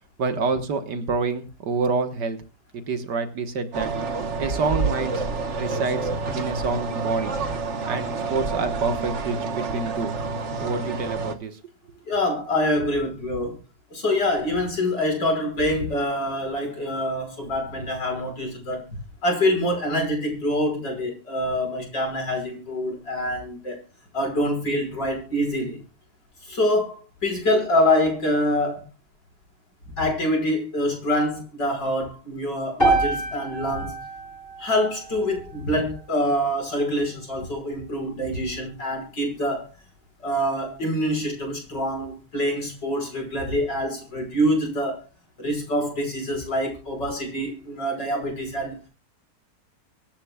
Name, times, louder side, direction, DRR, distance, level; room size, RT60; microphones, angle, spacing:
voice 1, 0.2-2.4 2.9-3.9 4.4-5.2 5.6-7.4 7.9-10.2 10.6-11.6, right 4 dB, 70° right, 2.0 m, -27 dB
sound 1, 3.7-11.4, right 4 dB, 45° right, 1.4 m, -28 dB
voice 2, 12.1-13.6 13.9-18.9 19.2-23.8 24.1-25.8 26.4-28.8 30.0-34.0 34.6-39.7 40.2-45.0 45.4-48.8, left 1 dB, 75° left, 6.2 m, -25 dB
sound 2, 32.8-37.0, right 2 dB, 30° left, 6.3 m, -28 dB
24.5 x 11.5 x 2.4 m
omnidirectional pair, 1.9 m